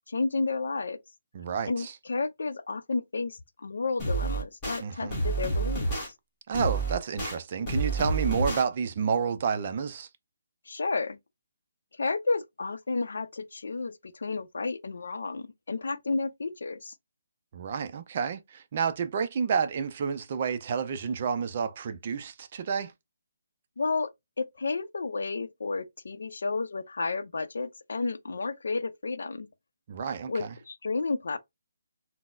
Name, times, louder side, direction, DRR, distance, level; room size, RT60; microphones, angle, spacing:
voice 1, 0.1-1.0 1.7-6.1 10.7-11.2 11.9-16.9 23.8-24.1 24.4-29.5 30.3-31.4, left 3 dB, 75° left, 0.5 m, -31 dB
voice 2, 1.3-1.9 4.8-5.2 6.5-10.1 17.5-22.9 29.9-30.5, right 6 dB, 35° right, 0.4 m, -30 dB
sound 1, 4.0-4.8 5.1-6.1 6.5-7.3 7.7-8.6, right 2 dB, 15° left, 1.3 m, -29 dB
4.0 x 2.0 x 2.4 m
hypercardioid pair, 170°, 0 cm